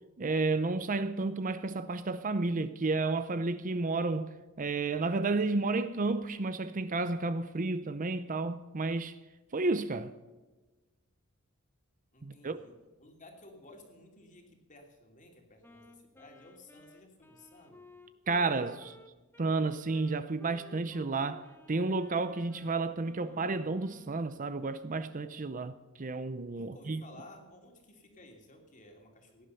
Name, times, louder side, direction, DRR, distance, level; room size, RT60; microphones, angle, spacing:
voice 1, 0.2-9.2 9.5-10.1 12.2-12.6 18.3-19.0 19.4-27.0, right 3 dB, 40° right, 0.6 m, -31 dB
voice 2, 12.1-12.7 13.0-17.8 26.5-29.5, left 2 dB, 35° left, 2.9 m, -55 dB
Wind instrument woodwind instrument, 15.6-24.3, left 2 dB, 10° left, 1.1 m, -56 dB
17.5 x 11.0 x 5.6 m
head